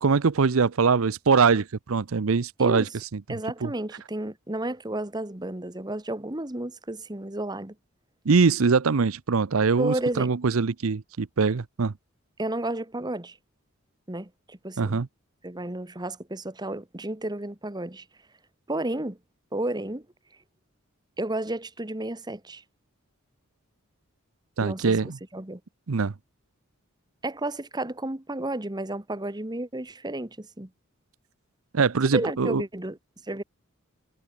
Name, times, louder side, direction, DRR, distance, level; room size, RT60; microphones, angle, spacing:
voice 1, 0.0-3.2 3.6-3.7 8.3-11.9 14.8-15.1 24.6-25.2 25.9-26.1 31.7-32.6, right 5 dB, 80° right, 0.6 m, -23 dB
voice 2, 3.3-7.7 9.8-10.3 12.4-13.4 14.1-15.0 15.4-18.0 18.7-19.2 19.5-20.0 21.2-22.6 24.6-25.6 27.2-30.7 32.1-33.0 33.3-33.4, right 1 dB, 20° right, 1.4 m, -32 dB
head